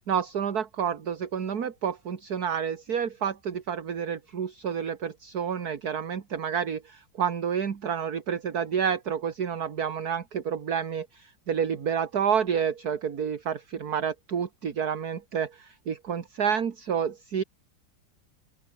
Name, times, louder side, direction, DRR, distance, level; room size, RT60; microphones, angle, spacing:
voice 1, 0.1-17.4, right 7 dB, 55° right, 2.1 m, -29 dB
open air
omnidirectional pair, 2.1 m